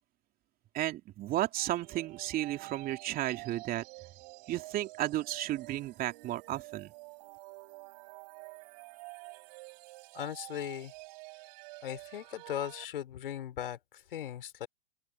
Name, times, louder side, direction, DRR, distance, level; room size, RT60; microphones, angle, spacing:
voice 1, 0.7-3.8 4.5-6.9, right 14 dB, 30° right, 3.0 m, -33 dB
sound 1, 1.6-12.9, right 29 dB, 45° right, 7.8 m, -49 dB
voice 2, 10.1-10.9 11.8-14.7, left 10 dB, 65° left, 5.2 m, -38 dB
open air
figure-of-eight pair, 110°, 30 cm